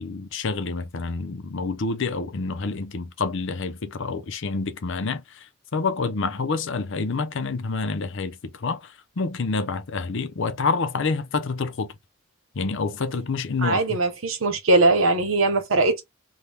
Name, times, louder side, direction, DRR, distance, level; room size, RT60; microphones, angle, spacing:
voice 1, 0.0-11.9 12.5-14.0, left 4 dB, 65° left, 0.6 m, -28 dB
voice 2, 13.6-16.0, right 2 dB, 90° right, 1.0 m, -20 dB
2.8 x 2.3 x 3.3 m
head